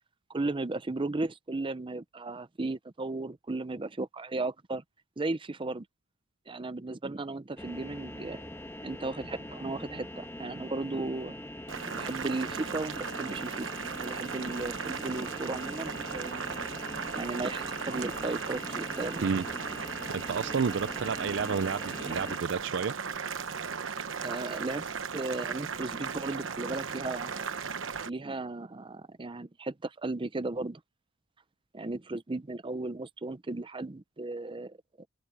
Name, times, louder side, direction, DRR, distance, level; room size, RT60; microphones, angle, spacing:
voice 1, 0.3-4.8 5.2-5.8 6.5-8.4 8.8-11.4 11.8-16.5 17.1-19.3 24.2-27.5 28.1-30.8 31.7-35.1, right 2 dB, 25° right, 0.6 m, -35 dB
sound 1, 7.6-22.4, left 1 dB, 15° left, 1.8 m, -43 dB
Boiling, 11.7-28.1, right 6 dB, 85° right, 1.0 m, -37 dB
voice 2, 20.1-22.9, right 5 dB, 65° right, 0.5 m, -30 dB
open air
head